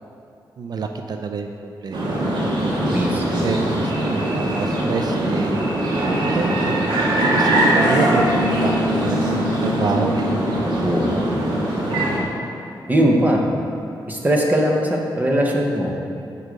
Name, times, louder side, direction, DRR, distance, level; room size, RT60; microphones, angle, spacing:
voice 1, 0.6-2.2 3.1-5.6 6.3-10.8, right 4 dB, 60° right, 5 dB, 0.4 m, -28 dB
sound 1, 1.9-12.2, right 1 dB, 75° right, 1.4 m, -21 dB
voice 2, 2.9-3.8 10.8-11.3 12.9-13.4 14.1-16.0, equal, 20° right, 0 dB, 0.9 m, -20 dB
8.0 x 5.4 x 5.2 m, 2.6 s
wide cardioid pair, 155°, 8 cm